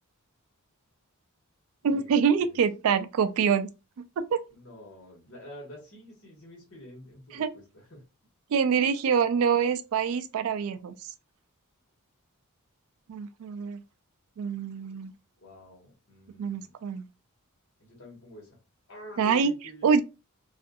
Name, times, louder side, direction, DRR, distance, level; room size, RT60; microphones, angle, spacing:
voice 1, 1.8-3.7 4.2-4.4 7.3-7.5 8.5-10.9 13.1-13.8 14.4-15.1 16.4-17.1 19.2-19.5 19.8-20.0, right 6 dB, 65° right, 0.3 m, -25 dB
voice 2, 4.5-8.0 15.4-16.7 17.8-18.6 18.9-20.0, equal, 60° left, 1.4 m, -48 dB
2.6 x 2.4 x 2.3 m
head